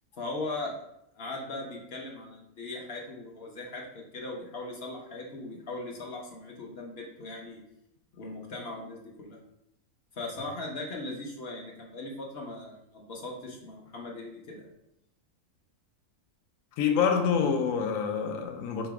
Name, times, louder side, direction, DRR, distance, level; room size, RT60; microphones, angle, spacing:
voice 1, 0.2-0.7 1.2-7.6 8.1-9.4 10.1-14.7, left 2 dB, 55° left, 1.0 m, -39 dB
voice 2, 16.8-18.9, left 6 dB, 80° left, 1.0 m, -26 dB
3.3 x 3.0 x 4.7 m
omnidirectional pair, 1.4 m